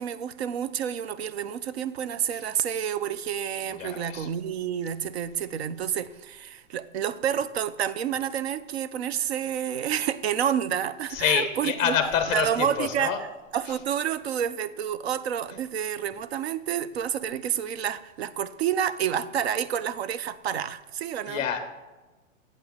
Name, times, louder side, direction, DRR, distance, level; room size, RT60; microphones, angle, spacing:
voice 1, 0.0-12.0 12.3-13.1 13.5-21.4, right 9 dB, 55° right, 0.5 m, -29 dB
voice 2, 3.8-4.3 11.1-13.2 21.3-21.6, left 8 dB, 15° left, 0.7 m, -27 dB
8.4 x 7.7 x 3.5 m
hypercardioid pair, 150°, 40 cm